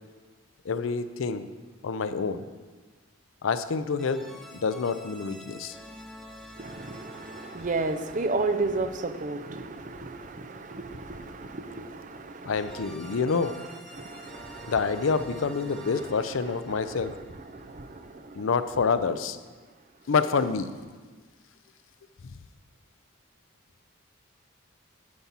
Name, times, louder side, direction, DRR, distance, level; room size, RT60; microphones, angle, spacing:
voice 1, 0.7-1.5 1.8-2.4 3.4-4.3 4.6-5.8 12.5-13.6 14.7-17.2 18.4-19.4 20.1-20.7, left 5 dB, 75° left, 12 dB, 0.5 m, -27 dB
sound 1, 1.1-1.5 4.0-9.8 12.6-18.4, equal, ahead, 0.7 m, -48 dB
voice 2, 6.6-13.2 13.9-14.7 16.0-16.2 16.7-17.2 17.5-18.2, right 3 dB, 40° right, 8 dB, 0.6 m, -33 dB
9.5 x 4.1 x 7.3 m, 1.4 s
head